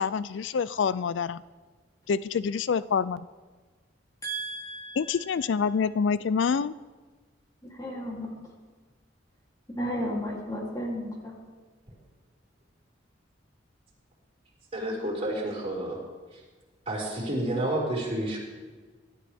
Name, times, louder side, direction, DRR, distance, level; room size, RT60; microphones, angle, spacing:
voice 1, 0.0-1.4 2.1-3.3 5.0-6.7, left 6 dB, 75° left, 17 dB, 0.4 m, -26 dB
voice 2, 4.2-5.3 7.7-8.3 9.7-11.3, equal, 20° left, -3 dB, 3.2 m, -33 dB
voice 3, 14.7-16.0 16.9-18.4, right 1 dB, 30° right, -4 dB, 5.4 m, -30 dB
24.0 x 12.5 x 3.6 m, 1.4 s
head